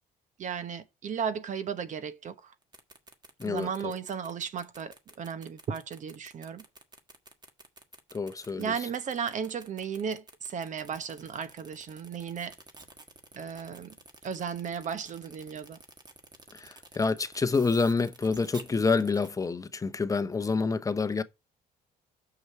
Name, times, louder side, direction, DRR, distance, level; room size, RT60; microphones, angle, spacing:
voice 1, 0.4-2.5 3.5-6.7 8.6-12.6 13.3-13.9 14.2-15.8, right 7 dB, 45° right, 0.9 m, -35 dB
sound 1, 2.6-19.3, right 3 dB, 25° right, 1.5 m, -50 dB
voice 2, 3.4-3.9 8.1-8.7 16.5-21.2, left 4 dB, 20° left, 0.8 m, -28 dB
6.2 x 5.9 x 4.6 m
cardioid pair, 110°, 17 cm